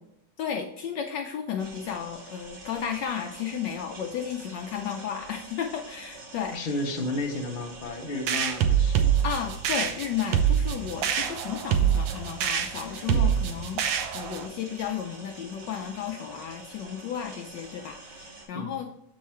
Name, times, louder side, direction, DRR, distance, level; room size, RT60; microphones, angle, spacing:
voice 1, 0.4-6.6 9.2-13.8 14.1-18.9, left 8 dB, 75° left, 3 dB, 1.1 m, -33 dB
sound 1, 1.6-18.4, right 2 dB, 55° right, 2.7 m, -46 dB
voice 2, 6.5-9.1 13.1-13.4 18.5-18.8, left 2 dB, 40° left, 1 dB, 0.7 m, -33 dB
sound 2, 8.3-14.5, right 9 dB, 75° right, 1.3 m, -25 dB
7.2 x 4.6 x 4.2 m, 0.81 s
omnidirectional pair, 2.3 m